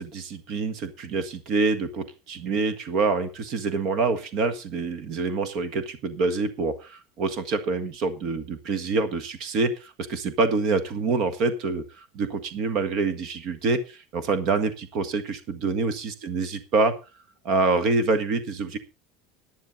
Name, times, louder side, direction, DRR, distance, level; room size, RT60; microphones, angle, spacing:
voice 1, 0.0-16.9 17.4-18.8, right 3 dB, 40° right, 12 dB, 1.6 m, -26 dB
11.0 x 10.5 x 5.2 m, 0.31 s
cardioid pair, 175°, 0 cm